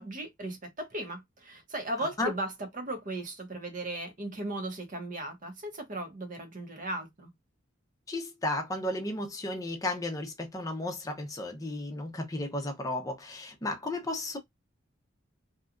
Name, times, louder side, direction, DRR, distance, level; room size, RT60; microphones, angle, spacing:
voice 1, 0.0-7.3, right 1 dB, 40° right, 0.8 m, -37 dB
voice 2, 8.1-14.4, left 1 dB, 15° left, 0.6 m, -34 dB
2.8 x 2.3 x 2.4 m
head